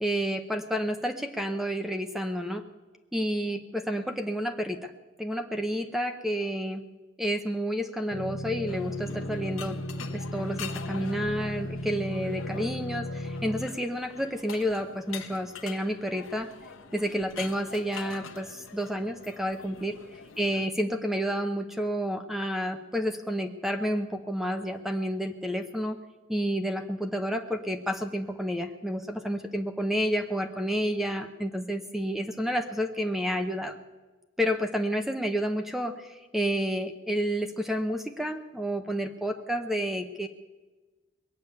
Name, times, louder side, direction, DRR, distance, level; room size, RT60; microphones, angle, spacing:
voice 1, 0.0-2.6 3.1-4.9 5.2-6.8 7.2-9.8 10.1-16.5 16.9-20.0 20.4-26.0 26.3-33.8 34.4-40.3, equal, ahead, 6 dB, 0.7 m, -30 dB
sound 1, 8.1-13.7, equal, 55° left, 1.0 m, -35 dB
sound 2, 8.7-20.7, left 6 dB, 85° left, 1.1 m, -44 dB
21.0 x 7.0 x 9.2 m, 1.2 s
head